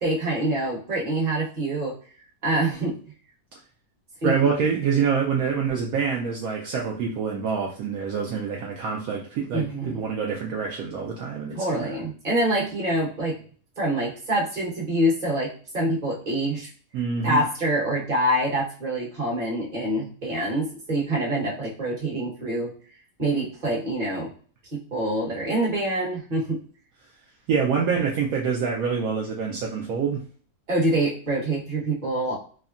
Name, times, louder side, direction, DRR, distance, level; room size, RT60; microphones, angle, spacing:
voice 1, 0.0-2.0 2.4-3.0 4.2-4.5 9.5-10.0 11.5-13.4 13.8-16.7 17.2-22.7 23.2-24.3 24.7-26.6 30.7-32.4, right 1 dB, 30° right, -5 dB, 1.1 m, -25 dB
voice 2, 4.2-11.9 16.9-17.4 27.5-30.2, right 6 dB, 70° right, -1 dB, 1.0 m, -26 dB
3.5 x 2.1 x 2.4 m, 0.42 s
omnidirectional pair, 1.7 m